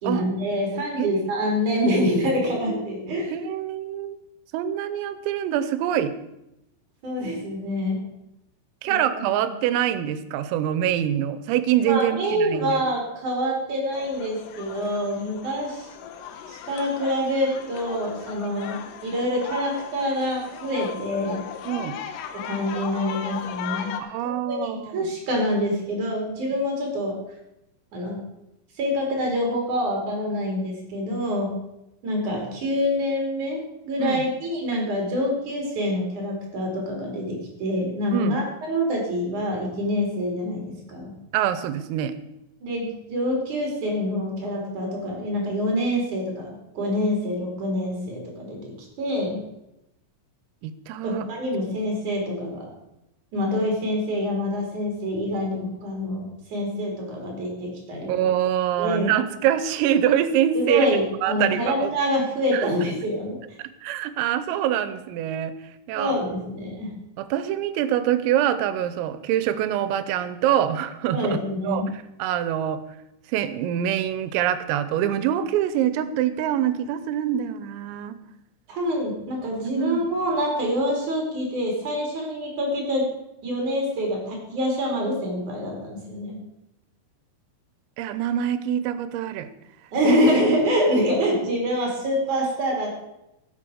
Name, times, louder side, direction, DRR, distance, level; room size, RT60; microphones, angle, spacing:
voice 1, 0.0-3.3 7.0-8.0 8.9-9.3 11.9-15.9 16.5-21.4 22.3-23.9 24.2-24.6 24.9-27.2 27.9-28.2 28.8-31.6 32.0-41.1 42.6-49.4 51.0-52.7 53.3-58.1 58.8-59.1 60.6-63.4 65.9-66.9 71.1-71.8 78.7-83.1 83.4-86.4 89.9-92.9, equal, 40° right, 0 dB, 4.1 m, -26 dB
voice 2, 3.3-4.2 4.5-6.1 8.8-12.8 21.6-22.0 24.0-25.1 26.5-26.6 34.0-34.2 38.1-38.4 41.3-42.1 50.6-51.3 58.1-60.9 61.2-61.9 62.5-62.7 63.8-65.5 65.9-66.2 67.2-72.8 73.3-78.2 79.7-80.1 88.0-89.5 90.1-90.2, right 10 dB, 85° right, 12 dB, 3.5 m, -25 dB
sound 1, 13.9-24.0, left 8 dB, 85° left, 3.5 m, -37 dB
13.0 x 8.4 x 6.3 m, 0.87 s
omnidirectional pair, 5.9 m